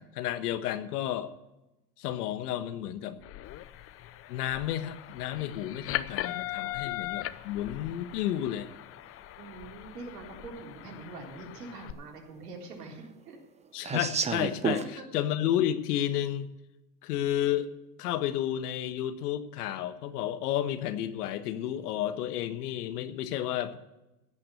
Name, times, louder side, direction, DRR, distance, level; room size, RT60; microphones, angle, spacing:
voice 1, 0.0-1.3 2.0-3.2 4.3-8.7 13.7-16.5 17.0-17.7 18.0-23.8, left 11 dB, 70° left, 10 dB, 1.4 m, -31 dB
sound 1, 3.2-11.9, left 15 dB, 30° left, 0.6 m, -39 dB
voice 2, 6.2-6.8 9.4-13.4 14.7-15.0, right 3 dB, 75° right, 0 dB, 3.8 m, -44 dB
sound 2, 8.3-8.4 9.7-9.8 10.3-10.4 10.6-11.3 11.6-14.9, right 5 dB, 15° right, 0.7 m, -32 dB
16.0 x 5.9 x 8.2 m, 0.96 s
hypercardioid pair, 100°, 48 cm